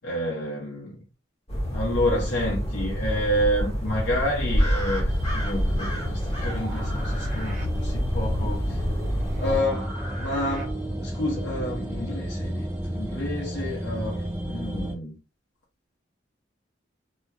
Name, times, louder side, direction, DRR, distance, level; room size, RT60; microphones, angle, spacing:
voice 1, 0.0-1.0 1.7-8.9 9.4-15.2, left 1 dB, 60° left, 0.8 m, -29 dB
sound 1, 1.5-9.6, equal, 30° left, 1.4 m, -27 dB
sound 2, 5.1-14.9, right 1 dB, 10° right, 0.5 m, -33 dB
sound 3, 5.6-11.1, right 1 dB, 40° right, 0.8 m, -41 dB
2.9 x 2.8 x 2.3 m
head